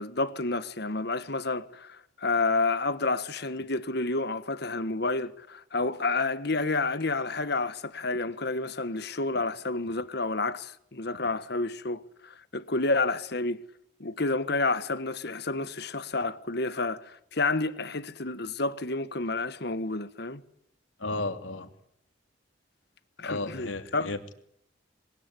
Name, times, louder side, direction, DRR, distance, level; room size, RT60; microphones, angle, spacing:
voice 1, 0.0-13.6 14.0-20.4 23.2-24.1, left 3 dB, 55° left, 1.4 m, -30 dB
voice 2, 21.0-21.7 23.2-24.3, left 2 dB, 80° left, 3.1 m, -33 dB
27.0 x 21.5 x 9.8 m
head